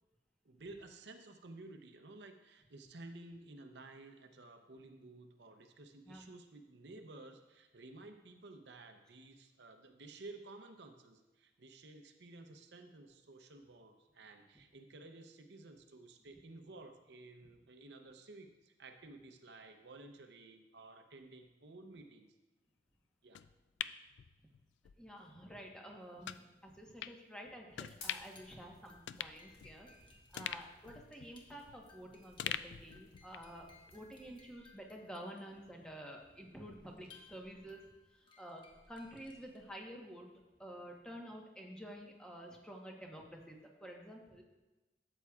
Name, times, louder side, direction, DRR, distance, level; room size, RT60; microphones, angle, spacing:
voice 1, 0.4-22.3 23.2-23.4, right 2 dB, 70° right, 6 dB, 0.7 m, -54 dB
sound 1, 23.3-25.0 25.3-25.4 26.2-26.4 27.0-27.2 27.7-28.4 28.7-28.8 29.1-30.0 30.4-32.0 32.4-33.6 33.9-34.0, left 10 dB, 85° left, 0.3 m, -44 dB
voice 2, 25.0-40.3 40.6-44.4, equal, 5° left, -1 dB, 1.1 m, -50 dB
sound 2, 27.8-34.5, left 3 dB, 60° left, 2.2 m, -61 dB
sound 3, 28.3-39.7, left 3 dB, 25° left, 1.1 m, -63 dB
12.5 x 8.0 x 2.4 m, 1.1 s
head